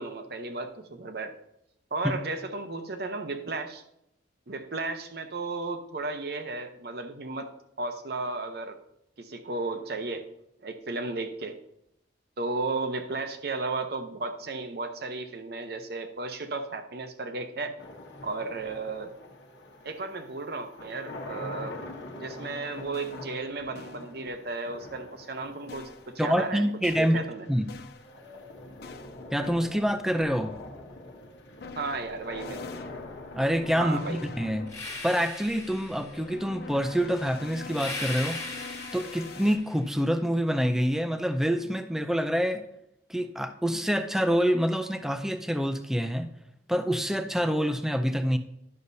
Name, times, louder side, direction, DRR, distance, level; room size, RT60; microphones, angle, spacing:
voice 1, 0.0-1.3 1.9-3.8 4.5-8.8 9.2-10.3 10.6-11.6 12.4-17.7 18.2-19.1 19.8-21.8 22.1-26.6 27.0-27.5 31.8-32.6 33.8-34.2, right 3 dB, 55° right, 7 dB, 0.8 m, -34 dB
sound 1, 17.8-36.8, left 2 dB, 70° left, 1.1 m, -45 dB
sound 2, 22.2-22.3 22.4-23.3 23.8-24.1 25.7-26.1 26.8-27.3 27.7-28.1 28.8-29.8 30.2-30.7 31.6-39.6, left 4 dB, 55° left, 0.4 m, -45 dB
voice 2, 26.2-27.2 27.5-27.7 29.3-30.5 33.3-34.7 35.0-38.4 38.9-42.6 43.1-46.3 46.7-48.4, equal, ahead, 9 dB, 0.4 m, -26 dB
sound 3, 34.7-36.3 37.7-39.8, left 2 dB, 15° left, 1.2 m, -38 dB
11.0 x 6.5 x 2.7 m, 0.79 s
head